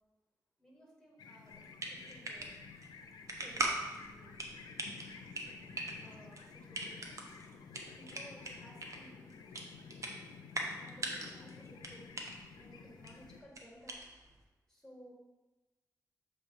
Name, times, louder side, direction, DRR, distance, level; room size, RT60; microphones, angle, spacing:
voice 1, 0.6-2.5 3.4-4.4 6.0-7.4 8.0-9.2 10.8-12.1 12.6-13.9 14.7-15.1, equal, 5° left, -3 dB, 1.8 m, -57 dB
sound 1, 1.2-13.4, left 5 dB, 90° left, 0.5 m, -52 dB
sound 2, 1.5-14.4, right 2 dB, 50° right, 0.9 m, -42 dB
6.9 x 3.1 x 5.2 m, 1.1 s
cardioid pair, 95°, 7 cm